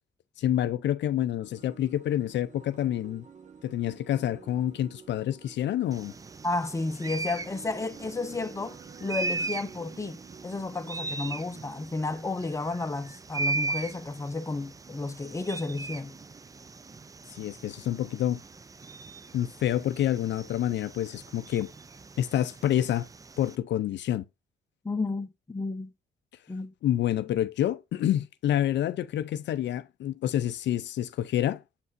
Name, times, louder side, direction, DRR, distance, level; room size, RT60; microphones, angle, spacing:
voice 1, 0.4-3.2 3.6-6.1 17.3-18.4 19.3-21.7 22.2-23.1 23.4-24.2 26.8-31.6, left 11 dB, 65° left, 0.5 m, -28 dB
sound 1, 1.4-13.4, right 6 dB, 35° right, 0.9 m, -51 dB
sound 2, 5.9-23.6, right 3 dB, 15° right, 0.3 m, -39 dB
voice 2, 6.4-16.2 24.8-25.9 26.5-26.7, left 3 dB, 15° left, 0.7 m, -32 dB
6.8 x 5.5 x 2.5 m
cardioid pair, 90°, 20 cm